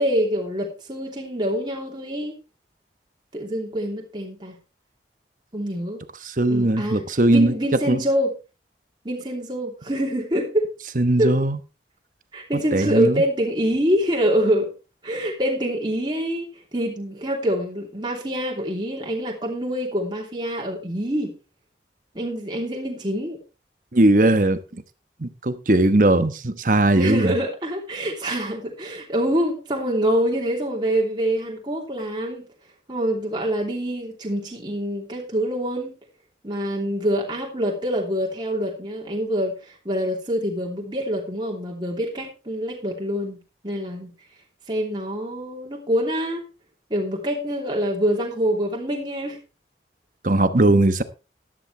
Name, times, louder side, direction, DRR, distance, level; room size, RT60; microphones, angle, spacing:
voice 1, 0.0-2.4 3.3-4.6 5.5-6.0 6.5-8.3 9.0-10.7 11.2-11.3 12.3-14.7 15.0-21.3 22.1-23.4 26.9-32.4 32.9-36.0 36.4-43.4 43.6-44.1 44.7-46.4 46.9-49.4, equal, 25° right, 2.9 m, -25 dB
voice 2, 6.2-7.5 7.9-8.0 10.9-11.6 12.7-13.2 23.9-24.8 25.2-27.3 50.2-51.0, right 1 dB, 45° right, 1.0 m, -19 dB
13.5 x 11.0 x 3.3 m
head